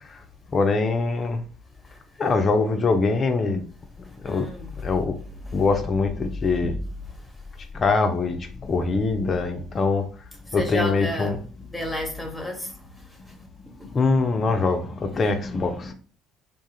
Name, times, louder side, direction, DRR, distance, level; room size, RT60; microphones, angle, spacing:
voice 1, 0.5-1.4 2.2-3.6 4.2-4.5 4.8-5.1 5.5-6.8 7.7-10.0 10.5-11.7 13.8-15.9, left 3 dB, 35° left, 0.5 m, -23 dB
voice 2, 4.2-4.7 10.5-11.3 11.7-12.7, left 1 dB, 10° left, 1.2 m, -30 dB
sound 1, 6.6-7.6, right 2 dB, 55° right, 0.9 m, -38 dB
2.5 x 2.4 x 4.1 m
figure-of-eight pair, 55°, 0 cm